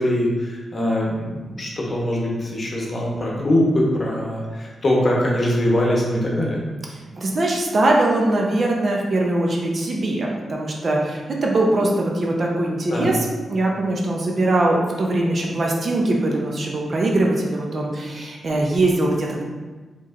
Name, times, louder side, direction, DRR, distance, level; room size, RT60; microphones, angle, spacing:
voice 1, 0.0-6.6 12.9-13.2, left 1 dB, 35° left, -3 dB, 0.9 m, -22 dB
voice 2, 7.1-13.2 13.5-19.4, right 2 dB, 45° right, -1 dB, 0.6 m, -21 dB
4.7 x 3.0 x 2.5 m, 1.3 s
cardioid pair, 105°, 0 cm